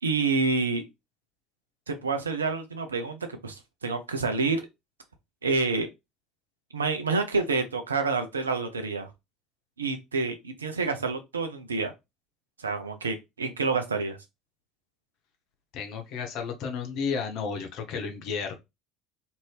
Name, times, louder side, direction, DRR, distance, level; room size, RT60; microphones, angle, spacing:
voice 1, 0.0-0.9 1.9-4.6 5.4-5.9 6.7-9.1 9.8-11.9 12.6-14.2, right 4 dB, 85° right, 0.5 m, -28 dB
voice 2, 15.7-18.6, left 5 dB, 55° left, 0.8 m, -32 dB
2.7 x 2.6 x 3.3 m
figure-of-eight pair, 65°, 0 cm